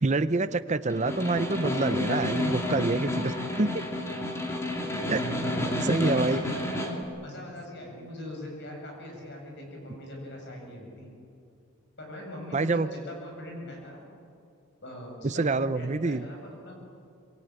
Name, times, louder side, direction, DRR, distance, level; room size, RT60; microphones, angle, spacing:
voice 1, 0.0-3.8 5.1-5.2 5.9-6.4 12.5-12.9 15.2-16.3, right 3 dB, 30° right, 12 dB, 0.6 m, -27 dB
Snare drum, 0.9-7.0, left 1 dB, 10° left, 2.7 m, -30 dB
voice 2, 5.2-11.1 12.0-14.1 14.8-16.8, equal, 50° left, 0 dB, 7.8 m, -40 dB
26.0 x 22.0 x 9.1 m, 2.4 s
head